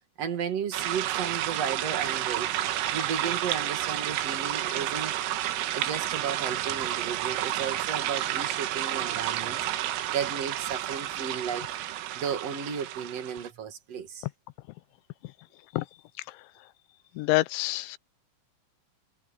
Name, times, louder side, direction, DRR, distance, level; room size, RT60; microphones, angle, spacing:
voice 1, 0.2-2.5 2.9-11.7 12.2-14.3, right 7 dB, 45° right, 2.2 m, -34 dB
sound 1, 0.7-13.5, right 13 dB, 80° right, 4.1 m, -31 dB
voice 2, 17.2-18.0, left 20 dB, 80° left, 2.8 m, -26 dB
omnidirectional pair, 5.8 m